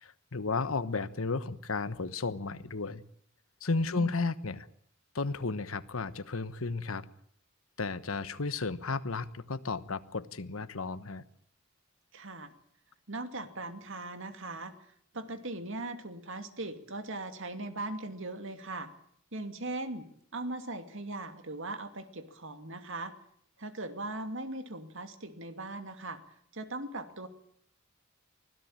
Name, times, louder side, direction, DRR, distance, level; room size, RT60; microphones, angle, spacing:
voice 1, 0.0-3.0 3.6-4.7 5.1-7.1 7.8-11.2, left 3 dB, 80° left, 13 dB, 1.2 m, -33 dB
voice 2, 3.8-4.2 12.1-12.5 13.1-14.7 15.1-18.9 19.3-20.1 20.3-23.1 23.6-26.2 26.5-27.3, right 2 dB, 65° right, 8 dB, 2.6 m, -39 dB
24.5 x 16.5 x 8.9 m, 0.65 s
head